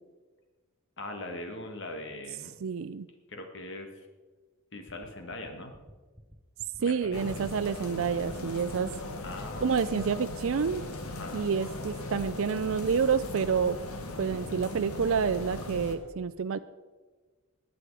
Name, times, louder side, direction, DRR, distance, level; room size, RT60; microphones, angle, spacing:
voice 1, 1.0-2.6 3.3-3.9 4.7-5.8 6.8-7.5 9.2-9.9 11.1-11.5, left 2 dB, 55° left, 4 dB, 1.9 m, -41 dB
voice 2, 2.6-3.1 6.8-8.9 9.6-10.8 11.3-13.8 14.2-16.6, right 6 dB, 60° right, 11 dB, 0.4 m, -28 dB
sound 1, 4.9-14.8, equal, 5° right, 0.8 m, -51 dB
sound 2, 7.1-16.0, left 2 dB, 75° left, 1.6 m, -38 dB
20.0 x 8.4 x 4.9 m, 1.3 s
head